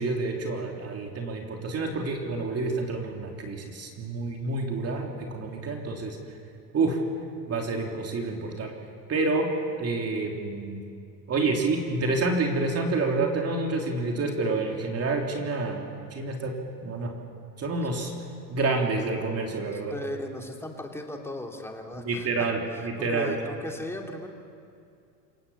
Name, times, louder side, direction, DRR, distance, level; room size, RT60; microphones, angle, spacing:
voice 1, 0.0-6.2 6.7-7.0 7.5-8.7 9.1-9.5 9.8-10.8 11.3-16.5 16.8-17.1 17.6-18.1 18.5-19.9 22.1-23.3, right 3 dB, 30° right, 1 dB, 3.3 m, -28 dB
voice 2, 19.7-24.3, left 2 dB, 5° left, 2 dB, 3.1 m, -37 dB
27.0 x 17.5 x 7.3 m, 2.4 s
hypercardioid pair, 90°, 48 cm